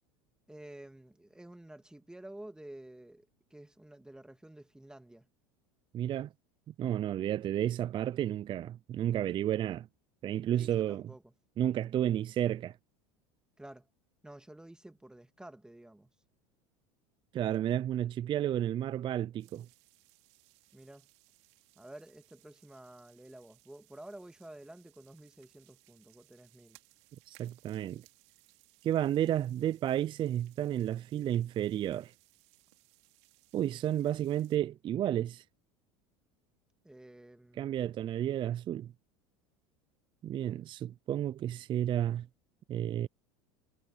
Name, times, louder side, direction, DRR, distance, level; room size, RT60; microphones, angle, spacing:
voice 1, 0.5-5.3 10.5-11.3 13.6-13.9 14.2-16.1 20.7-21.1 21.8-26.8 36.8-37.7, right 1 dB, 5° right, 2.0 m, -51 dB
voice 2, 5.9-6.3 6.8-9.9 10.2-11.0 11.6-12.8 17.3-19.7 27.3-28.0 28.8-32.1 33.5-35.4 37.6-38.9 40.2-42.3 42.7-43.1, right 11 dB, 35° right, 0.4 m, -31 dB
sound 1, 19.4-34.6, right 25 dB, 75° right, 4.0 m, -65 dB
supercardioid pair, 100°, 14 cm